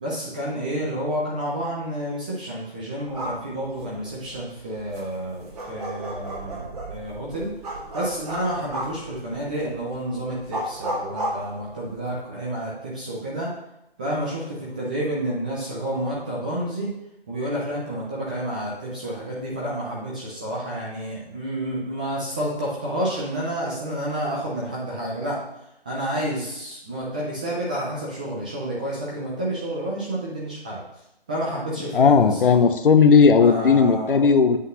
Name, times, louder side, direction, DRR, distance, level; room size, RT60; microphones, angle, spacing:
voice 1, 0.0-7.5 7.9-13.5 14.0-16.9 17.3-25.4 25.8-30.8 31.3-32.6 33.4-34.3, right 1 dB, 10° right, -5 dB, 0.5 m, -29 dB
sound 1, 3.0-12.2, right 1 dB, 40° right, 2.3 m, -34 dB
voice 2, 31.9-34.6, left 5 dB, 60° left, 8 dB, 0.9 m, -16 dB
8.1 x 4.0 x 6.3 m, 0.85 s
hypercardioid pair, 155°, 31 cm